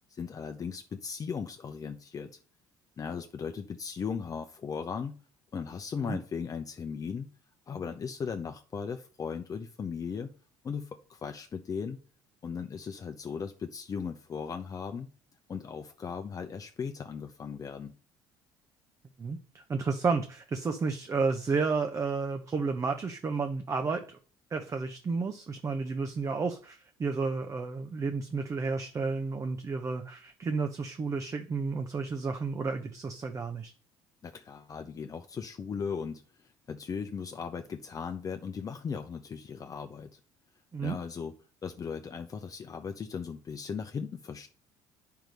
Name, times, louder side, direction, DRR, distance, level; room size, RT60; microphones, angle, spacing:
voice 1, 0.1-2.4 3.0-5.2 5.5-7.3 7.7-10.3 10.6-12.0 12.4-15.1 15.5-17.9 34.2-40.2 40.8-41.3 41.6-44.5, left 6 dB, 35° left, 6 dB, 0.8 m, -37 dB
voice 2, 19.2-24.2 24.5-33.7 40.7-41.0, right 4 dB, 30° right, 5 dB, 0.9 m, -31 dB
9.0 x 4.8 x 5.3 m, 0.40 s
supercardioid pair, 80°, 10 cm